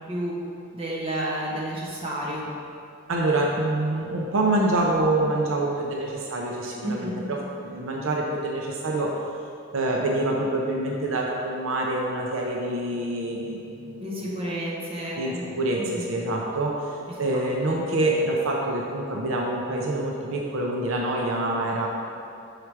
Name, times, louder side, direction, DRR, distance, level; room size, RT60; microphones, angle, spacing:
voice 1, 0.7-2.5 6.8-7.2 14.0-15.4 15.8-16.0, right 1 dB, 25° right, -6 dB, 1.2 m, -31 dB
voice 2, 3.1-9.1 9.7-14.1 15.2-16.8 17.2-21.9, right 2 dB, 70° right, -1 dB, 0.7 m, -26 dB
5.8 x 4.9 x 4.7 m, 2.6 s
head